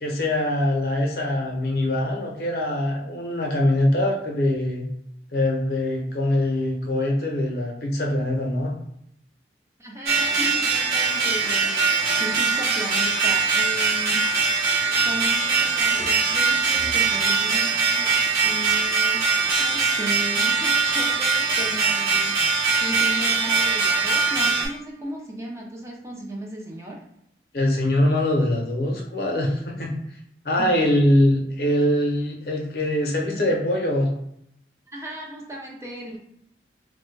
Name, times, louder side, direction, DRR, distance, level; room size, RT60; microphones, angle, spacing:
voice 1, 0.0-4.9 5.3-8.7 27.5-29.9 30.4-34.1, left 1 dB, 55° left, 0 dB, 0.6 m, -23 dB
voice 2, 9.8-14.3 14.9-22.5 22.8-27.0 30.6-30.8 34.9-36.2, equal, 15° right, -2 dB, 0.5 m, -36 dB
sound 1, 10.1-24.7, right 4 dB, 55° right, 0.8 m, -22 dB
3.1 x 2.1 x 3.2 m, 0.74 s
head